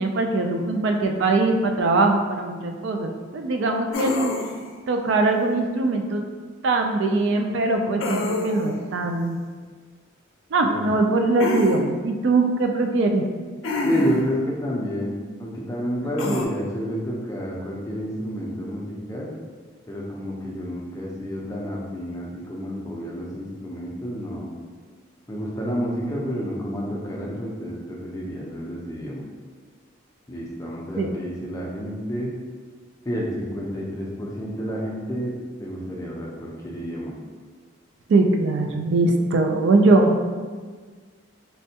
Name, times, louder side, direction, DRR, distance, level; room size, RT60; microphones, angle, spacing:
voice 1, 0.0-4.3 4.9-6.2 6.6-9.4 10.5-13.2 16.2-16.4 31.0-31.1 38.1-40.1, right 2 dB, 60° right, 3 dB, 0.3 m, -21 dB
sound 1, 3.9-4.7 8.0-8.8 11.4-11.8 13.6-14.3 16.2-16.4, left 2 dB, 75° left, 0.5 m, -27 dB
voice 2, 13.8-15.1 15.4-19.3 19.9-24.5 25.3-29.2 30.3-32.3 33.1-37.1, equal, 15° left, -3 dB, 0.5 m, -29 dB
4.2 x 2.2 x 2.7 m, 1.5 s
head